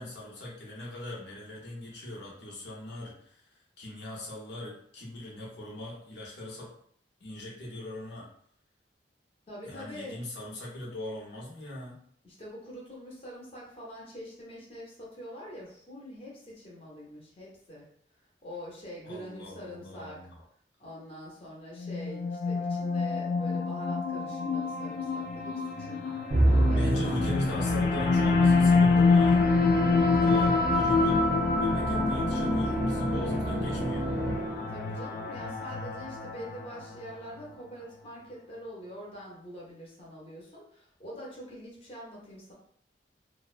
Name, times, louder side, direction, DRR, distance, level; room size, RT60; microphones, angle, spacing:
voice 1, 0.0-6.7 7.2-8.3 9.6-12.0 19.0-20.4 26.7-29.4 30.2-31.2 31.6-34.1, left 1 dB, 80° left, -4 dB, 0.7 m, -40 dB
voice 2, 9.5-10.2 12.2-17.9 18.4-20.2 20.8-27.2 30.0-30.7 34.7-42.5, equal, 35° left, -4 dB, 0.7 m, -45 dB
sound 1, 21.8-37.1, left 4 dB, 55° left, 0.3 m, -27 dB
Musical instrument, 26.3-34.8, right 1 dB, 50° right, 0.6 m, -29 dB
2.5 x 2.0 x 2.4 m, 0.65 s
head